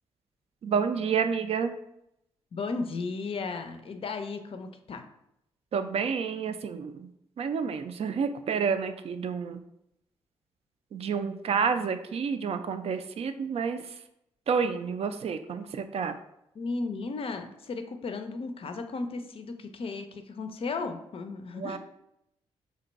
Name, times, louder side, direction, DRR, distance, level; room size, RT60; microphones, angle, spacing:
voice 1, 0.6-1.7 5.7-7.1 7.4-9.6 10.9-13.8 14.5-16.2 21.6-21.8, right 6 dB, 50° right, 9 dB, 0.3 m, -29 dB
voice 2, 2.5-5.0 16.6-21.8, left 4 dB, 45° left, 7 dB, 0.5 m, -35 dB
2.5 x 2.2 x 3.9 m, 0.81 s
hypercardioid pair, 40°, 13 cm